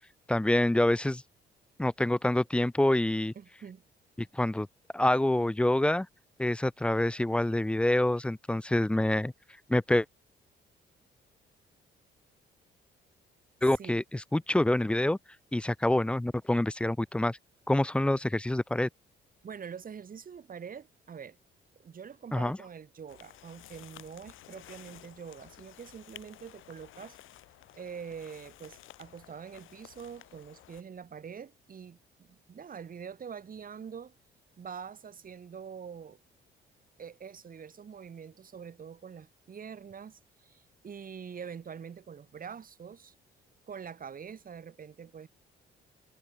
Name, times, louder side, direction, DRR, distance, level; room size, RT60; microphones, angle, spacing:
voice 1, 0.3-1.2 1.8-3.3 4.2-4.7 4.9-6.1 6.4-9.3 9.7-10.1 13.6-15.2 15.5-17.4 17.7-18.9 22.3-22.6, left 1 dB, 5° left, 0.4 m, -26 dB
voice 2, 3.3-3.8 13.8-14.0 19.4-21.4 21.8-27.2 27.7-34.1 34.6-36.2 37.0-43.1 43.7-45.3, right 7 dB, 45° right, 2.9 m, -45 dB
sound 1, 23.1-30.8, left 15 dB, 85° left, 2.1 m, -53 dB
cardioid pair, 90°, 20 cm